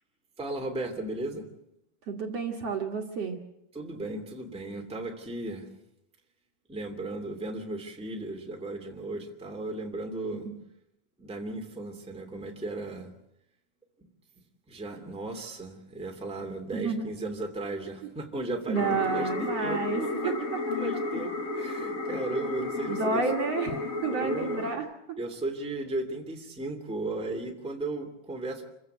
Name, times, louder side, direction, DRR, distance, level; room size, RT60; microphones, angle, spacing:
voice 1, 0.4-1.5 3.7-5.7 6.7-10.5 11.2-13.1 14.7-23.2 24.1-24.7 25.2-28.6, right 2 dB, ahead, 2 dB, 2.1 m, -36 dB
voice 2, 2.1-3.4 10.3-10.6 16.7-17.1 18.7-20.6 22.9-25.2, right 4 dB, 55° right, 2 dB, 2.5 m, -30 dB
sound 1, 18.7-24.7, left 3 dB, 60° left, 0.8 m, -32 dB
27.0 x 15.5 x 8.1 m, 0.84 s
omnidirectional pair, 3.8 m